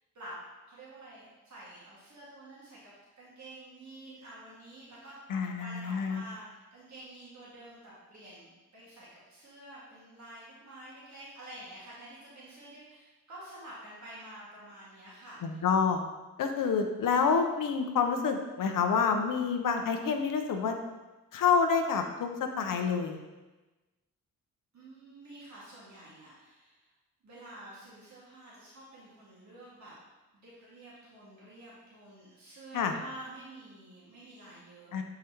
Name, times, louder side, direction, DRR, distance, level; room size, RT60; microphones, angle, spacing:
voice 1, 0.7-15.7 24.7-26.9 27.2-29.9 30.3-35.0, right 1 dB, 55° right, -8 dB, 2.0 m, -49 dB
voice 2, 5.3-6.2 15.4-16.0 16.4-20.8 21.3-23.2 32.7-32.9 34.9-35.0, left 6 dB, 70° left, 5 dB, 0.7 m, -28 dB
6.7 x 4.9 x 2.9 m, 1.1 s
cardioid pair, 65°, 33 cm